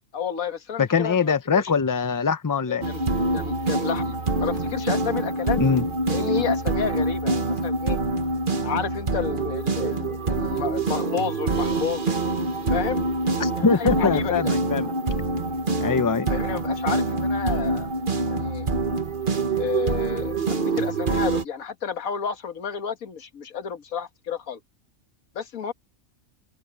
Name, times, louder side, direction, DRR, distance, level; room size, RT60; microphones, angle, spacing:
voice 1, 0.1-1.7 2.7-3.0 3.3-5.6 6.1-8.0 8.6-12.2 12.7-13.0 13.6-14.5 16.3-17.9 18.3-18.7 19.5-20.4 20.8-24.6 25.4-25.7, left 7 dB, 80° left, 1.8 m, -31 dB
voice 2, 0.8-2.8 5.6-5.8 13.4-14.9 15.8-16.3, left 5 dB, 25° left, 0.4 m, -22 dB
sound 1, 2.8-21.4, right 2 dB, 40° right, 1.5 m, -25 dB
omnidirectional pair, 1.4 m